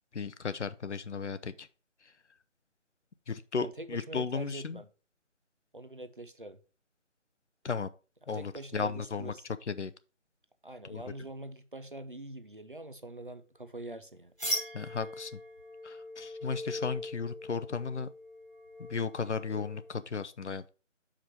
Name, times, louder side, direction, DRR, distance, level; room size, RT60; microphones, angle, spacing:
voice 1, 0.1-1.7 3.3-4.8 7.6-7.9 8.3-9.3 9.7-9.9 10.9-11.0 14.7-15.4 15.8-18.1 18.8-20.7, left 5 dB, 65° left, 0.7 m, -35 dB
voice 2, 3.6-4.9 5.7-6.6 8.3-9.4 10.6-14.3, right 1 dB, 45° right, 0.5 m, -44 dB
sound 1, 14.4-19.9, left 1 dB, 5° left, 1.4 m, -40 dB
6.0 x 5.0 x 5.0 m
figure-of-eight pair, 175°, 37 cm